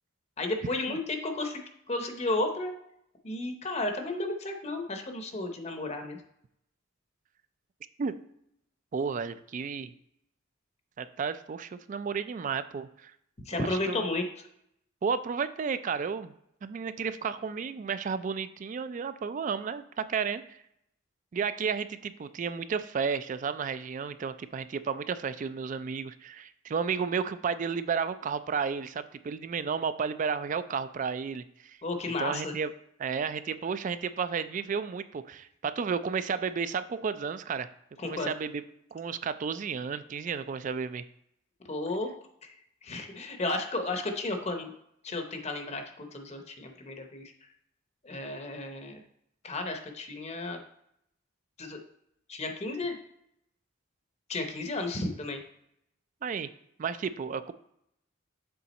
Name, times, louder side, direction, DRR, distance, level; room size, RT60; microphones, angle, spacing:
voice 1, 0.4-2.8 3.2-6.2 13.5-14.5 31.8-32.5 38.0-38.3 41.7-42.1 42.4-42.6 42.8-44.7 45.0-47.3 48.0-49.0 49.4-50.6 51.6-51.8 52.3-53.0 54.3-55.4, left 2 dB, 30° left, 5 dB, 0.7 m, -33 dB
voice 2, 8.9-9.9 11.0-13.1 13.5-14.0 15.0-16.3 16.6-20.6 21.3-31.8 32.2-32.7 33.0-37.7 38.0-38.6 38.9-41.0 56.2-56.5 56.8-57.5, right 6 dB, 40° right, 13 dB, 0.3 m, -32 dB
7.0 x 3.7 x 4.1 m, 0.75 s
head